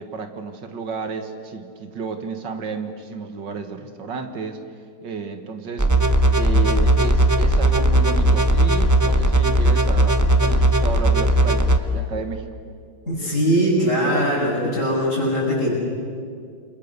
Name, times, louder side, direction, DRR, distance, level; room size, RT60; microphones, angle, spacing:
voice 1, 0.0-4.6 5.0-5.9 6.4-12.4, right 4 dB, 65° right, 7 dB, 2.2 m, -32 dB
sound 1, 5.8-11.8, right 1 dB, 15° right, 0.6 m, -17 dB
voice 2, 13.1-15.8, equal, 35° left, -9 dB, 7.4 m, -21 dB
29.0 x 24.0 x 6.9 m, 2.3 s
omnidirectional pair, 2.1 m